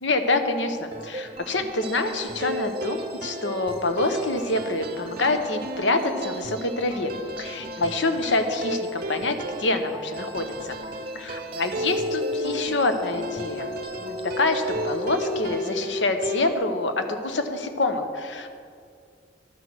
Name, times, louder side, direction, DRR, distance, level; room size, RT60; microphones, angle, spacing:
voice 1, 0.0-7.1 7.4-10.7 11.1-13.7 14.0-18.6, left 2 dB, 85° left, 7 dB, 1.0 m, -26 dB
sound 1, 0.9-15.7, right 2 dB, 30° right, 0.8 m, -39 dB
sound 2, 2.1-16.6, equal, 50° right, 0.5 m, -35 dB
sound 3, 11.7-16.5, left 2 dB, 60° left, 0.5 m, -34 dB
12.0 x 6.1 x 6.2 m, 2.2 s
head